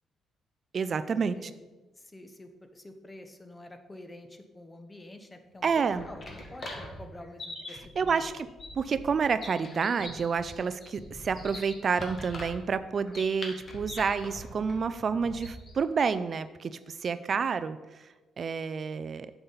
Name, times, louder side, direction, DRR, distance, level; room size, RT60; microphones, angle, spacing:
voice 1, 0.7-1.5 5.6-6.0 7.7-8.5 8.8-18.0 18.4-19.3, right 5 dB, 45° right, 13 dB, 0.3 m, -29 dB
voice 2, 2.0-8.5, left 1 dB, 20° left, 7 dB, 0.9 m, -48 dB
sound 1, 5.6-15.8, left 1 dB, 45° left, 1.7 m, -43 dB
7.8 x 6.9 x 3.9 m, 1.2 s
cardioid pair, 90°, 0 cm